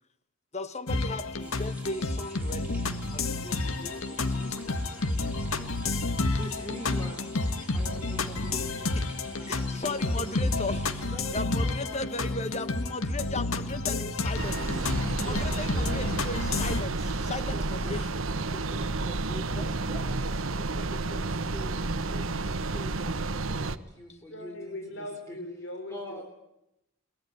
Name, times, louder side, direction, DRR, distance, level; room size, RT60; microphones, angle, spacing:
voice 1, 0.5-2.8 3.1-5.5 8.9-9.1 9.4-18.2 18.5-18.6 19.6-19.7 19.9-20.0 20.3-20.5 20.8-20.9 24.1-24.2, left 2 dB, 30° left, 11 dB, 1.5 m, -37 dB
sound 1, 0.9-16.8, left 3 dB, 85° left, 1.8 m, -30 dB
sound 2, 1.4-11.1, right 2 dB, 5° right, 4.6 m, -50 dB
voice 2, 6.3-7.2 7.7-9.0 9.3-10.6 11.0-12.3 13.8-14.2 15.2-16.0 17.5-20.2 20.5-25.4 25.9-26.2, equal, 15° left, 2 dB, 3.9 m, -44 dB
sound 3, 14.4-23.8, right 3 dB, 75° right, 1.2 m, -31 dB
voice 3, 24.3-26.0, left 1 dB, 60° left, 4 dB, 3.9 m, -39 dB
23.0 x 19.5 x 9.5 m, 0.86 s
head